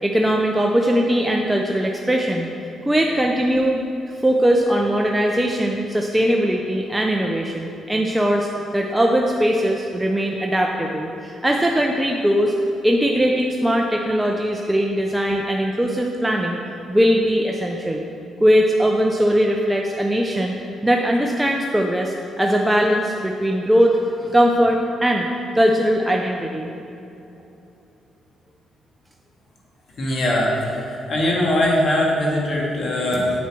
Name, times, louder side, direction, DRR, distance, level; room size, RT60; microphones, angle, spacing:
voice 1, 0.0-2.5 2.9-3.8 4.2-12.5 12.8-16.6 16.9-18.0 18.4-20.5 20.8-25.3 25.5-26.7, equal, 10° right, 0 dB, 0.6 m, -20 dB
voice 2, 30.0-33.3, left 1 dB, 50° left, -3 dB, 1.9 m, -21 dB
7.3 x 7.1 x 4.6 m, 2.8 s
cardioid pair, 90°, 0 cm